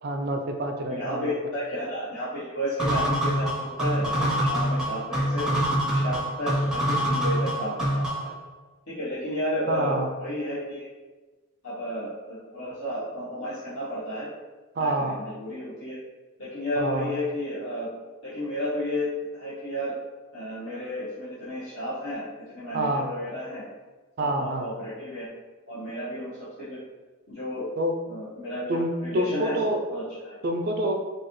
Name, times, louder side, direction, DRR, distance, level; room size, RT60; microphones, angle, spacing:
voice 1, 0.0-1.3 9.7-10.1 14.8-15.1 16.8-17.1 22.7-23.1 24.2-24.7 27.8-27.9 28.7-29.8 30.4-30.9, right 1 dB, 45° right, 4 dB, 0.3 m, -27 dB
voice 2, 0.9-5.5 5.9-8.4 8.9-10.9 11.6-14.3 14.8-16.0 16.4-17.9 18.2-19.9 20.3-22.3 22.5-23.6 24.2-25.3 25.7-26.8 27.3-27.7 28.1-29.6 29.9-30.4, equal, 60° left, -11 dB, 0.9 m, -32 dB
sound 1, 2.8-8.4, equal, 5° right, 0.6 m, -25 dB
4.7 x 2.3 x 3.0 m, 1.3 s
head